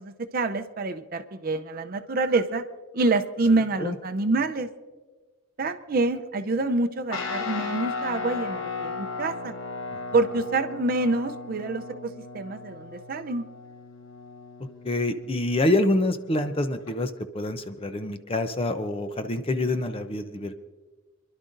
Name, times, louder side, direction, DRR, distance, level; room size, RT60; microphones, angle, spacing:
voice 1, 0.0-2.6 2.9-4.7 5.6-9.5 10.1-13.4, right 3 dB, 45° right, 8 dB, 0.6 m, -26 dB
Guitar, 7.1-16.9, left 4 dB, 85° left, 1.1 m, -36 dB
voice 2, 14.8-20.5, left 1 dB, 30° left, 9 dB, 0.6 m, -26 dB
29.0 x 11.5 x 2.6 m, 1.3 s
head